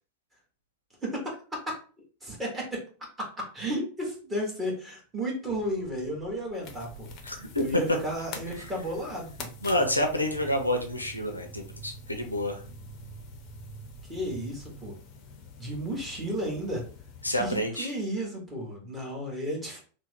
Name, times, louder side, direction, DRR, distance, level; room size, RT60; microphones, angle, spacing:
voice 1, 1.0-1.4 1.7-1.8 2.2-2.8 3.2-7.1 7.6-9.5 14.1-14.9 15.6-16.8 17.4-19.8, equal, 15° right, -2 dB, 1.2 m, -33 dB
sound 1, 5.5-14.8, right 6 dB, 60° right, 0.7 m, -49 dB
sound 2, 6.6-17.7, left 5 dB, 35° left, 0.6 m, -47 dB
voice 2, 7.2-8.0 9.6-12.6 17.2-17.9, left 1 dB, 85° left, 4 dB, 0.5 m, -28 dB
2.9 x 2.0 x 3.6 m, 0.39 s
figure-of-eight pair, 90°, 0 cm